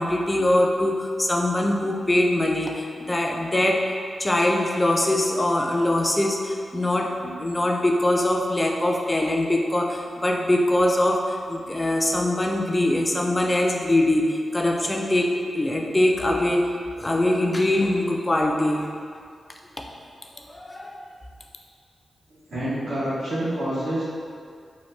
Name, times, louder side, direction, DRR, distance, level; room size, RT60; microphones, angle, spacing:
voice 1, 0.0-3.9 4.2-18.9 19.8-19.9 20.5-21.0, left 1 dB, 25° left, 0 dB, 0.4 m, -23 dB
voice 2, 22.5-24.0, right 1 dB, 85° right, -12 dB, 1.4 m, -27 dB
3.1 x 2.3 x 3.1 m, 2.2 s
cardioid pair, 70°, 0 cm